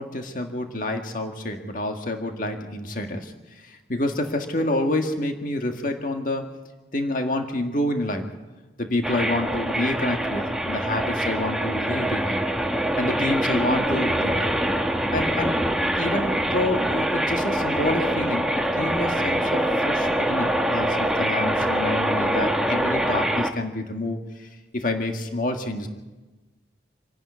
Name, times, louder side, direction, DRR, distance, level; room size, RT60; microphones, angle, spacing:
voice 1, 0.0-6.5 6.9-8.3 8.8-12.4 13.0-14.5 15.1-15.6 16.0-25.9, left 1 dB, 45° left, 4 dB, 1.8 m, -28 dB
sound 1, 9.0-23.5, right 1 dB, 5° right, 1.1 m, -24 dB
27.0 x 11.0 x 9.7 m, 1.2 s
head